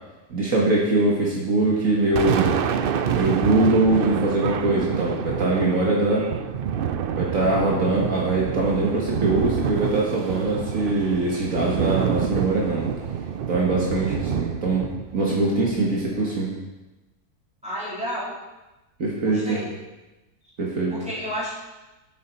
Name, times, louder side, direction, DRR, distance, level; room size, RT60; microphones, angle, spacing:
voice 1, 0.3-2.6 3.1-6.3 7.2-12.9 13.5-14.8 15.1-16.5 19.0-19.6 20.6-20.9, right 2 dB, 60° right, -3 dB, 1.9 m, -22 dB
Thunder, 1.8-16.4, right 8 dB, 80° right, 0.5 m, -27 dB
voice 2, 17.6-18.3 19.2-19.8 20.9-21.5, equal, 5° right, -8 dB, 3.6 m, -31 dB
10.0 x 8.5 x 4.4 m, 1.1 s
omnidirectional pair, 1.7 m